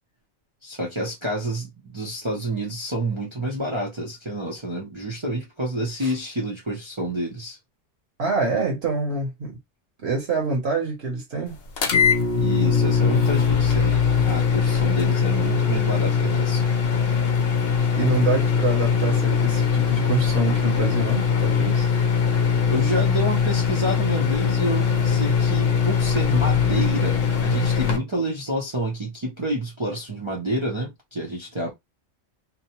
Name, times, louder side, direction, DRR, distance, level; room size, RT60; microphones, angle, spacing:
voice 1, 0.6-7.6 12.3-16.6 22.7-31.7, right 1 dB, 30° right, 0.6 m, -28 dB
voice 2, 8.2-9.6 10.0-11.6 17.9-21.9, right 4 dB, 60° right, 1.1 m, -26 dB
sound 1, 11.8-28.0, left 6 dB, 60° left, 0.8 m, -21 dB
2.8 x 2.0 x 2.9 m
omnidirectional pair, 1.3 m